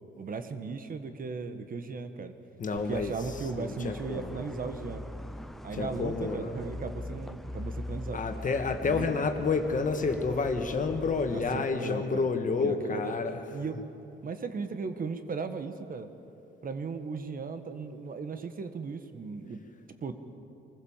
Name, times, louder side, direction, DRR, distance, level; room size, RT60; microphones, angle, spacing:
voice 1, 0.2-2.3 2.7-5.0 5.6-8.2 8.8-9.1 11.3-12.3 12.6-13.1 13.5-13.8 14.2-16.1 16.6-19.6 20.0-20.1, right 4 dB, 45° right, 9 dB, 1.4 m, -37 dB
voice 2, 2.6-3.1 3.6-4.5 5.7-6.6 8.1-13.4, left 4 dB, 40° left, 6 dB, 1.8 m, -29 dB
sound 1, 2.8-11.6, left 1 dB, ahead, 0.7 m, -42 dB
24.0 x 15.0 x 7.3 m, 2.9 s
cardioid pair, 90°, 20 cm